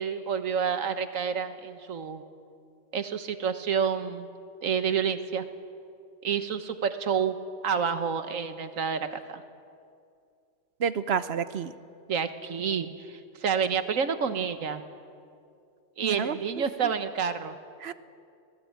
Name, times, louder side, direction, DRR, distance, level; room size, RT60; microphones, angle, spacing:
voice 1, 0.0-2.2 2.9-4.3 4.6-5.5 6.2-7.4 7.6-9.4 12.1-14.8 16.0-17.5, right 7 dB, 85° right, 10 dB, 1.6 m, -29 dB
voice 2, 10.8-11.7 16.0-16.6 17.8-17.9, right 7 dB, 55° right, 13 dB, 1.0 m, -30 dB
25.5 x 18.5 x 8.6 m, 2.4 s
omnidirectional pair, 1.3 m